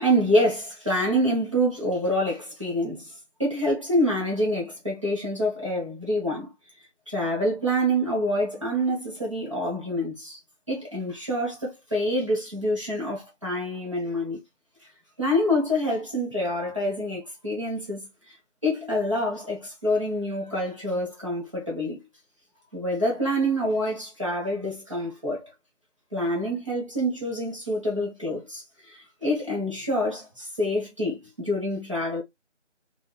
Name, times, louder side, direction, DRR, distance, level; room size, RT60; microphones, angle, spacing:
voice 1, 0.0-6.5 7.1-10.4 10.7-14.4 15.2-18.3 18.6-22.0 22.7-25.5 26.1-32.2, equal, 25° right, 1.1 m, -26 dB
3.8 x 2.5 x 2.3 m
figure-of-eight pair, 165°, 36 cm